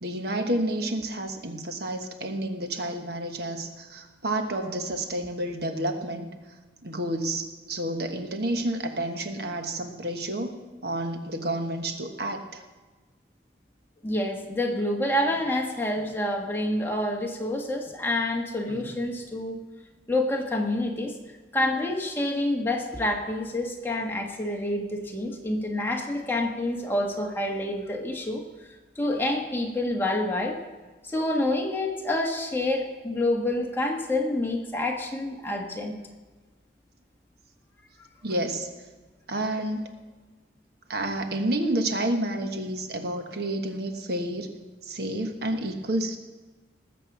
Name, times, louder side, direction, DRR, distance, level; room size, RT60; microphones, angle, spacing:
voice 1, 0.0-6.3 6.8-12.6 18.7-18.8 38.2-38.7 39.3-39.8 40.9-44.5 44.8-46.2, right 1 dB, 65° right, 5 dB, 1.3 m, -30 dB
voice 2, 14.0-19.6 20.1-21.1 21.5-28.4 28.9-30.6 31.0-35.9, left 1 dB, 15° left, 0 dB, 1.6 m, -27 dB
20.0 x 7.7 x 6.1 m, 1.2 s
head